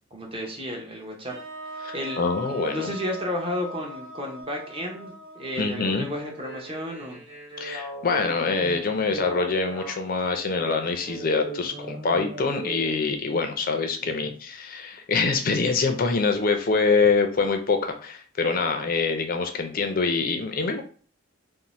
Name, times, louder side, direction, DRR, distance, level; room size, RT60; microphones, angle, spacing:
voice 1, 0.1-1.3 1.9-2.3 2.7-7.2 14.0-14.3, left 1 dB, 25° right, 0 dB, 0.6 m, -32 dB
sound 1, 1.3-7.3, right 1 dB, 80° right, 1.2 m, -42 dB
voice 2, 1.8-2.9 5.6-6.1 7.6-20.8, left 4 dB, 45° left, 5 dB, 0.4 m, -25 dB
sound 2, 6.3-13.0, right 2 dB, 55° right, 1.2 m, -39 dB
2.6 x 2.0 x 3.0 m, 0.42 s
head